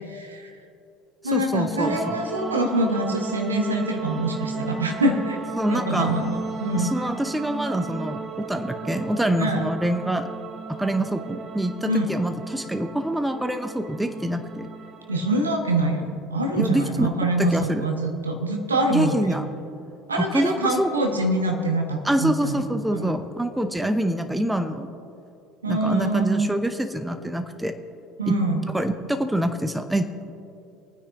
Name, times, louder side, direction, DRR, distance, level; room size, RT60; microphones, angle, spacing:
voice 1, 0.1-0.6 1.2-5.4 5.7-6.9 9.4-9.7 11.8-12.1 15.1-19.3 20.1-22.6 22.9-23.1 25.6-26.5 28.2-28.7, right 1 dB, 85° right, 3 dB, 1.2 m, -25 dB
voice 2, 1.3-2.2 5.6-6.1 6.8-10.3 10.7-14.7 16.5-17.1 17.4-17.9 18.9-19.4 20.2-20.9 22.0-24.9 25.7-27.7 28.3-28.4 28.7-30.3, right 1 dB, 5° right, 8 dB, 0.7 m, -25 dB
sound 1, 1.8-15.6, right 4 dB, 35° right, 1.1 m, -35 dB
23.5 x 9.5 x 2.6 m, 2.7 s
figure-of-eight pair, 65°, 0 cm